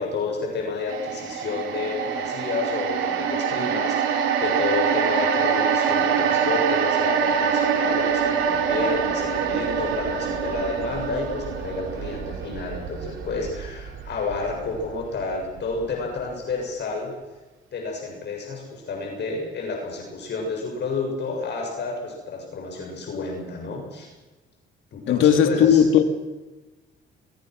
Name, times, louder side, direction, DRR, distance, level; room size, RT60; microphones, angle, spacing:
voice 1, 0.0-17.1 17.7-24.1 24.9-25.8, left 3 dB, 60° left, 1 dB, 7.1 m, -30 dB
sound 1, 0.9-15.2 15.6-15.7, right 7 dB, 85° right, 3.6 m, -25 dB
voice 2, 25.1-26.1, left 8 dB, 90° left, 8 dB, 2.3 m, -17 dB
24.0 x 22.5 x 6.3 m, 1.2 s
cardioid pair, 90°, 20 cm